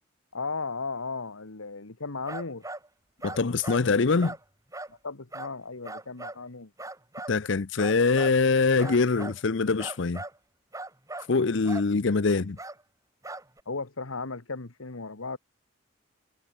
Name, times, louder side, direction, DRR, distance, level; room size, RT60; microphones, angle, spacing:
voice 1, 0.3-2.7 4.9-6.7 12.3-12.4 13.6-15.4, left 4 dB, 85° left, 1.6 m, -36 dB
sound 1, 2.3-2.9 3.2-3.8 4.2-4.4 4.7-4.9 5.3-5.5 5.8-6.4 6.8-7.4 7.8-8.4 8.8-9.4 9.8-10.4 10.7-11.3 11.6-11.9 12.6-12.8 13.2-13.6, right 2 dB, 15° right, 3.4 m, -39 dB
voice 2, 3.2-4.3 7.3-10.2 11.3-12.6, left 4 dB, 60° left, 0.7 m, -24 dB
head